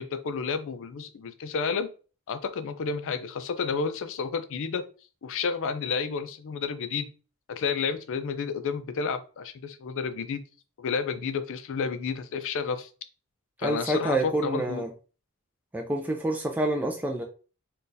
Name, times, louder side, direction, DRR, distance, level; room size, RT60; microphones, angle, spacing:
voice 1, 0.0-1.9 2.3-4.8 5.2-7.0 7.5-10.4 10.8-12.9 13.6-14.9, left 5 dB, 65° left, 10 dB, 0.4 m, -31 dB
voice 2, 13.6-14.9 15.7-17.2, right 1 dB, 10° right, 1 dB, 0.3 m, -28 dB
3.9 x 2.3 x 2.6 m, 0.36 s
head